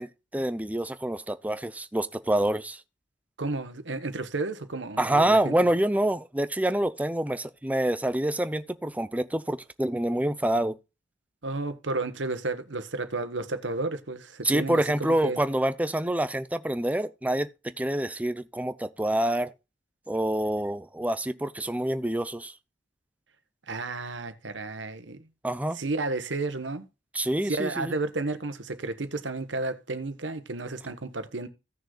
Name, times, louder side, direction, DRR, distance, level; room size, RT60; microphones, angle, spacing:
voice 1, 0.0-2.8 5.0-10.8 14.4-19.5 20.1-22.5 25.4-25.8 27.1-27.9, right 1 dB, 10° right, 0.6 m, -27 dB
voice 2, 3.4-5.5 11.4-15.4 23.7-25.3 25.8-26.8 27.4-31.5, right 3 dB, 80° right, 1.3 m, -32 dB
16.5 x 6.5 x 2.4 m
head